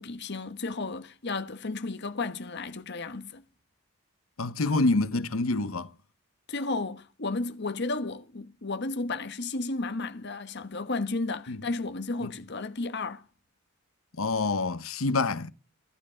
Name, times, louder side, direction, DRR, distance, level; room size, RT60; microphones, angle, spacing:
voice 1, 0.0-3.4 6.5-13.2, left 3 dB, 55° left, 1.2 m, -33 dB
voice 2, 4.4-5.9 11.5-11.6 12.2-12.3 14.2-15.5, left 3 dB, 85° left, 1.0 m, -26 dB
16.0 x 12.5 x 5.0 m
head